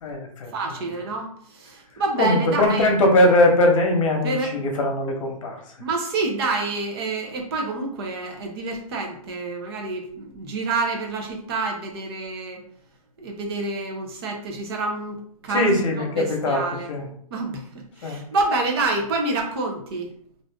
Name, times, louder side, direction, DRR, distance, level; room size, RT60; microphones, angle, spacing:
voice 1, 0.0-0.5 2.2-5.6 15.5-16.6 16.9-17.0 18.0-18.2, left 1 dB, 55° left, 2 dB, 0.9 m, -20 dB
voice 2, 0.5-2.9 4.2-4.5 5.8-12.6 13.2-16.9 17.3-20.1, right 3 dB, 40° right, 2 dB, 0.7 m, -28 dB
2.5 x 2.4 x 3.5 m, 0.63 s
hypercardioid pair, 160°, 19 cm